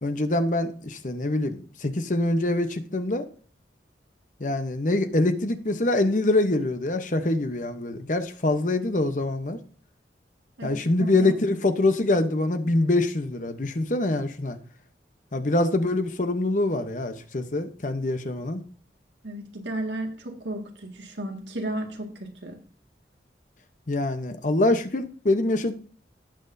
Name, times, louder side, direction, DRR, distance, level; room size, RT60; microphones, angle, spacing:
voice 1, 0.0-3.3 4.4-9.6 10.6-14.6 15.3-18.6 23.9-25.7, left 2 dB, 45° left, 0.9 m, -24 dB
voice 2, 10.6-11.3 19.2-22.6, right 1 dB, 80° right, 2.0 m, -34 dB
18.0 x 6.1 x 2.7 m
head